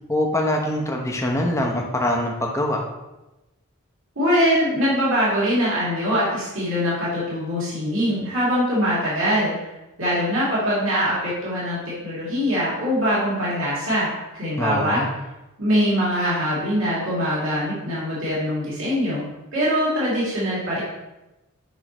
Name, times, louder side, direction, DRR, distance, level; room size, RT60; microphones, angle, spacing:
voice 1, 0.1-2.9 14.6-15.1, left 1 dB, 15° left, 1 dB, 0.9 m, -23 dB
voice 2, 4.2-9.7 10.0-15.0 15.6-19.2 19.5-20.8, equal, 65° right, -8 dB, 2.7 m, -23 dB
8.6 x 5.5 x 3.0 m, 1.0 s
head